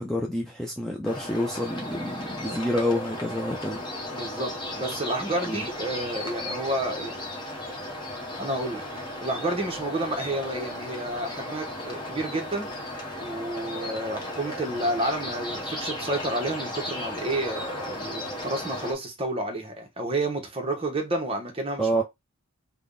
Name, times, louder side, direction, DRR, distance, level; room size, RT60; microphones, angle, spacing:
voice 1, 0.0-3.8 5.5-5.6 21.8-22.0, equal, ahead, 0.4 m, -28 dB
sound 1, 1.0-18.9, left 1 dB, 20° left, 1.0 m, -35 dB
voice 2, 4.1-7.3 8.4-12.7 13.2-22.0, right 1 dB, 25° right, 0.9 m, -30 dB
3.4 x 2.2 x 3.7 m
head